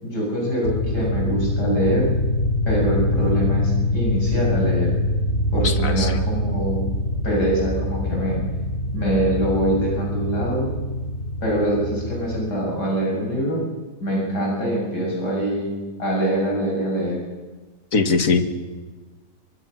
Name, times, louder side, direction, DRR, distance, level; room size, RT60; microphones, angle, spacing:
voice 1, 0.0-2.1 2.7-4.9 5.5-6.8 7.2-8.4 8.9-10.7 11.4-13.6 14.0-15.7 16.0-17.2, right 1 dB, 75° left, -2 dB, 7.2 m, -24 dB
sound 1, 0.6-12.3, left 1 dB, 35° left, 4.3 m, -24 dB
voice 2, 5.6-6.2 17.9-18.5, left 4 dB, 55° left, 8 dB, 2.0 m, -21 dB
24.0 x 22.5 x 6.3 m, 1.3 s
omnidirectional pair, 1.8 m